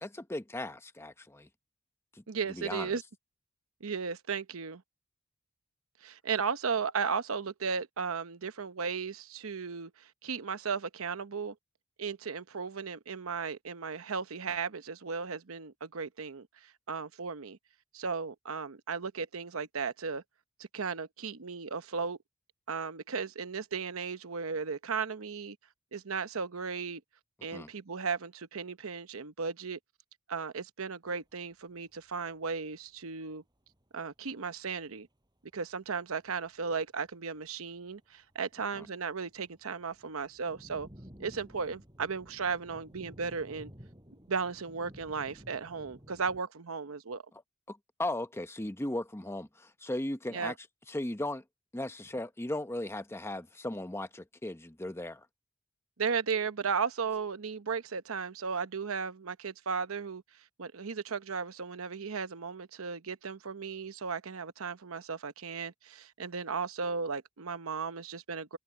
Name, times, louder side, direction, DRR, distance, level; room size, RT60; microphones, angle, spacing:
voice 1, 0.0-1.5 2.1-2.2 2.5-3.0 27.5-27.7 38.8-38.9 47.7-50.5 50.9-51.4 51.7-55.3, left 1 dB, 10° left, 0.9 m, -37 dB
voice 2, 2.3-3.0 3.8-4.8 6.0-11.5 12.0-17.6 17.9-20.2 20.7-22.2 22.7-25.6 25.9-27.0 27.4-29.8 30.3-33.4 33.9-35.1 35.5-40.9 41.2-43.7 44.3-47.2 50.3-50.5 56.0-60.2 60.6-68.6, right 5 dB, 80° right, 0.9 m, -35 dB
sound 1, 31.1-31.2 31.4-31.5 31.8-32.2 32.5-32.6 32.7-33.1 33.7-33.8 34.3-34.4 34.7-34.9 35.5-35.9 36.3-36.8 37.1-38.0 38.3-46.4, equal, 20° right, 6.6 m, -53 dB
head